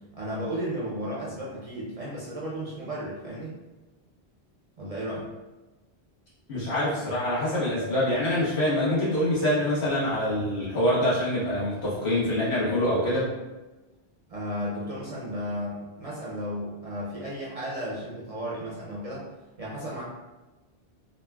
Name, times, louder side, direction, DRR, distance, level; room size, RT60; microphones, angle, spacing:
voice 1, 0.2-3.5 4.8-5.3 14.3-19.2 19.6-20.0, equal, 45° right, -5 dB, 0.5 m, -34 dB
voice 2, 6.5-13.2, left 1 dB, 80° left, -9 dB, 1.5 m, -25 dB
3.7 x 2.4 x 2.2 m, 1.1 s
omnidirectional pair, 1.1 m